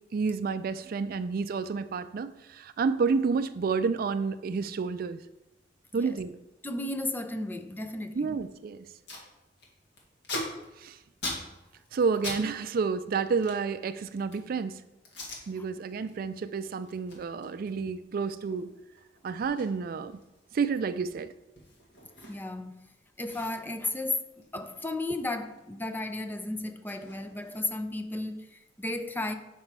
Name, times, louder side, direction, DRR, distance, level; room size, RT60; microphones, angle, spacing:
voice 1, 0.1-5.2 5.9-6.4 8.1-8.8 10.8-11.0 11.9-14.8 15.5-18.7 19.2-20.2 20.5-21.3, right 5 dB, 55° right, 0.4 m, -30 dB
voice 2, 6.6-8.3 15.2-15.3 15.6-15.7 22.3-29.3, left 2 dB, 10° left, 0.5 m, -34 dB
Packing tape duct tape, 9.0-9.3 9.6-12.4 12.7-14.5 15.0-15.4 15.9-16.1 16.5-22.7 22.9-23.0 23.3-25.7 25.9-27.9, left 2 dB, 70° left, 1.9 m, -42 dB
6.7 x 5.4 x 4.6 m
head